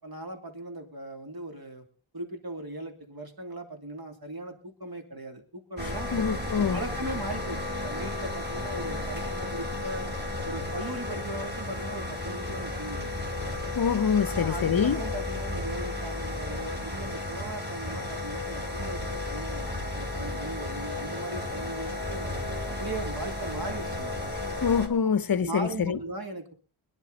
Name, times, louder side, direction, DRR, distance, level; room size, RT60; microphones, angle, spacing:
voice 1, 0.0-1.8 2.1-6.1 6.5-10.1 10.4-13.3 14.2-22.4 22.8-24.2 25.4-26.5, right 1 dB, 45° right, 3.0 m, -38 dB
sound 1, 5.8-24.9, left 2 dB, 20° right, 3.2 m, -33 dB
voice 2, 6.1-6.8 13.7-15.0 24.6-26.0, left 6 dB, 45° left, 0.7 m, -25 dB
22.0 x 10.5 x 4.0 m
wide cardioid pair, 110°, 49 cm